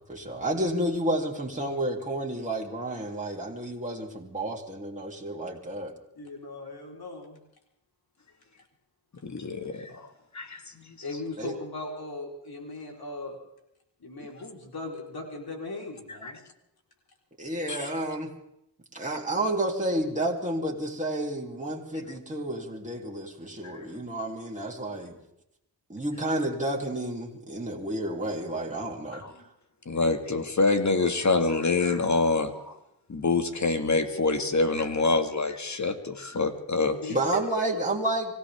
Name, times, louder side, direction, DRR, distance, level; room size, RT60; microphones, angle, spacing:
voice 1, 0.0-5.9 11.4-11.5 17.4-18.3 18.9-25.1 25.9-29.2 37.1-38.3, right 1 dB, 15° right, -1 dB, 3.0 m, -30 dB
voice 2, 6.2-7.4 11.0-13.4 14.0-16.4 36.9-37.7, left 2 dB, 55° left, 0 dB, 4.1 m, -38 dB
voice 3, 9.2-10.1 10.3-11.0 16.2-16.3 17.7-17.9 23.6-23.9 29.2-29.3 29.9-32.8 33.1-37.1, left 3 dB, 40° left, 7 dB, 2.0 m, -26 dB
25.0 x 16.0 x 3.6 m, 0.81 s
cardioid pair, 65°, 43 cm